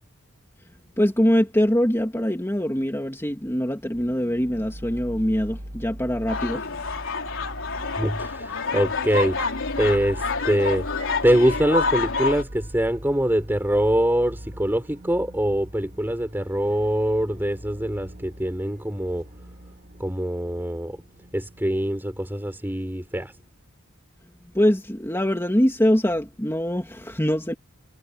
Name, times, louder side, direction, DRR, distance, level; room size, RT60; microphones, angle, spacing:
voice 1, 1.0-6.7 24.5-27.5, equal, 10° left, 2.7 m, -23 dB
Horror Music, 3.9-23.7, equal, 50° right, 3.1 m, -41 dB
sound 1, 6.3-12.4, left 4 dB, 60° left, 4.1 m, -28 dB
voice 2, 8.0-9.5 9.8-10.9 11.2-19.2 20.0-21.0 21.3-23.3, equal, 10° right, 4.0 m, -24 dB
head